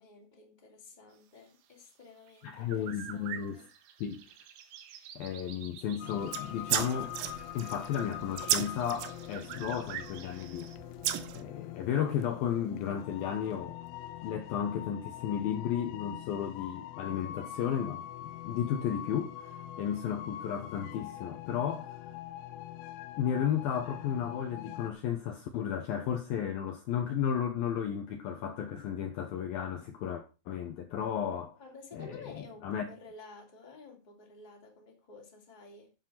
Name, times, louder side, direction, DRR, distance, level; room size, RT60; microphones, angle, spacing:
voice 1, 0.0-3.7 31.6-35.9, left 3 dB, 15° left, 2.3 m, -52 dB
sound 1, 2.3-10.8, right 9 dB, 70° right, 3.2 m, -47 dB
voice 2, 2.4-3.6 4.0-4.2 5.2-7.2 7.5-10.7 11.3-13.8 14.2-21.9 23.2-31.6 31.9-32.3 32.6-32.9, left 8 dB, 70° left, 2.5 m, -34 dB
sound 2, 6.0-24.9, left 12 dB, 85° left, 3.1 m, -44 dB
sound 3, 6.2-10.3 10.6-11.4, right 12 dB, 85° right, 3.2 m, -35 dB
10.0 x 7.3 x 5.7 m
omnidirectional pair, 5.1 m